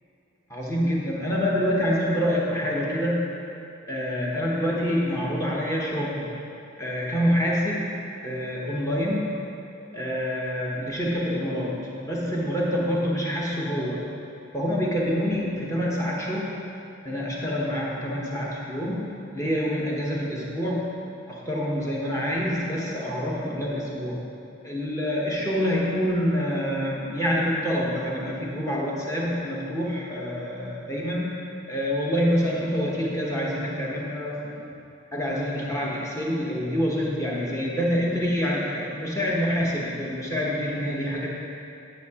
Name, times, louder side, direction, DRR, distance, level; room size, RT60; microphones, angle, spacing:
voice 1, 0.5-3.4 3.9-6.4 6.8-9.5 9.9-14.1 14.5-16.7 17.0-24.3 24.6-34.6 35.1-41.3, equal, 15° left, -5 dB, 1.0 m, -27 dB
8.9 x 7.5 x 2.9 m, 2.8 s
head